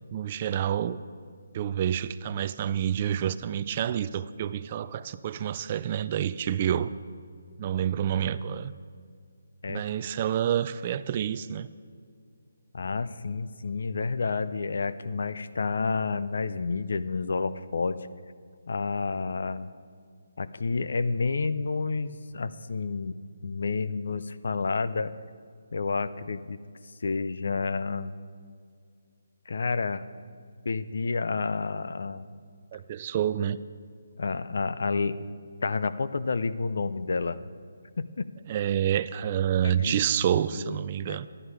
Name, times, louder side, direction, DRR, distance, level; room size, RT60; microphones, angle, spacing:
voice 1, 0.1-1.0 1.5-6.9 7.6-8.7 9.7-11.7 32.7-33.6 38.5-41.3, right 10 dB, 30° right, 14 dB, 0.3 m, -28 dB
voice 2, 12.7-18.0 18.7-19.7 20.4-25.1 25.7-26.6 27.0-28.1 29.5-30.1 30.6-32.3 34.2-35.2 35.6-37.4 38.0-38.3 39.6-40.0 40.5-40.8 41.1-41.2, left 4 dB, 65° left, 14 dB, 0.5 m, -30 dB
13.0 x 11.0 x 4.8 m, 2.1 s
hypercardioid pair, 165°, 0 cm